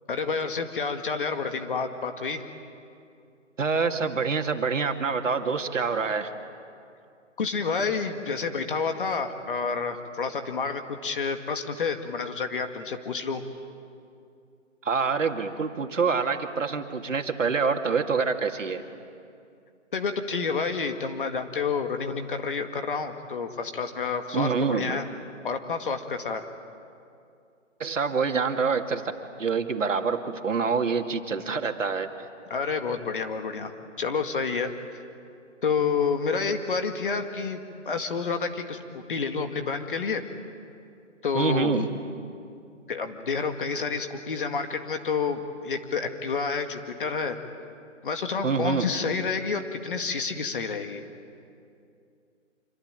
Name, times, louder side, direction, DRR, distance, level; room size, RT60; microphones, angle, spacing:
voice 1, 0.1-2.4 7.4-13.4 19.9-25.1 25.4-26.4 32.5-33.7 34.0-34.7 35.6-40.2 41.2-42.0 42.9-47.4 48.0-51.0, left 5 dB, 45° left, 6 dB, 2.1 m, -29 dB
voice 2, 3.6-6.3 14.8-18.8 24.3-24.9 27.8-29.0 29.4-32.1 41.3-41.8 48.4-48.9, right 5 dB, 75° right, 5 dB, 2.4 m, -26 dB
26.5 x 24.5 x 9.0 m, 2.5 s
hypercardioid pair, 170°, 38 cm